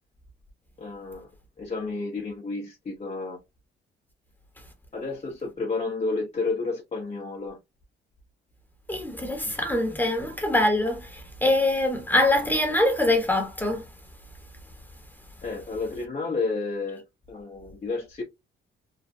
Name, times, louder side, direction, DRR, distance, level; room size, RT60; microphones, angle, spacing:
voice 1, 0.8-1.3 1.6-3.4 4.9-7.6 15.4-18.2, left 3 dB, 30° left, 0.8 m, -31 dB
voice 2, 8.9-13.8, left 1 dB, 10° left, 1.0 m, -24 dB
3.1 x 2.3 x 2.6 m
cardioid pair, 90°, 20 cm